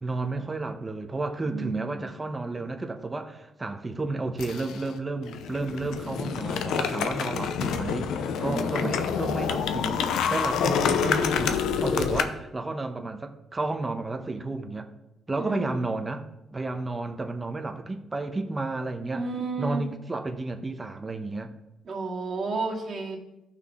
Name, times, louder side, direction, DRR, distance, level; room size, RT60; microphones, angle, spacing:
voice 1, 0.0-8.1 8.4-14.9 15.3-16.2 16.5-19.3 19.6-21.5, right 3 dB, 20° right, 6 dB, 1.0 m, -32 dB
voice 2, 1.4-2.1 8.4-9.0 15.4-15.8 19.1-19.9 21.9-23.2, right 3 dB, 45° right, -2 dB, 2.2 m, -32 dB
sound 1, 4.4-4.9 5.3-12.2, left 7 dB, 80° left, 0.7 m, -27 dB
13.5 x 5.9 x 3.7 m, 0.91 s
cardioid pair, 90°, 0 cm